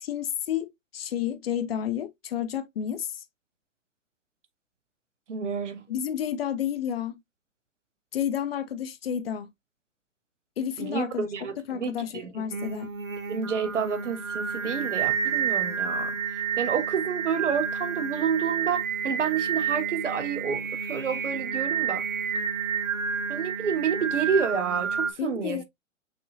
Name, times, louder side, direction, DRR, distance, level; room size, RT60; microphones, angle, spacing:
voice 1, 0.0-3.1 5.9-7.2 8.1-9.5 10.6-11.3 11.7-12.9 25.2-25.6, left 9 dB, 50° left, 0.6 m, -30 dB
voice 2, 5.3-5.8 10.8-12.3 13.3-16.2 16.6-22.0 23.3-25.6, right 7 dB, 65° right, 1.0 m, -29 dB
Singing, 12.5-25.1, right 7 dB, 80° right, 1.2 m, -30 dB
6.4 x 2.7 x 2.6 m
figure-of-eight pair, 115°, 40 cm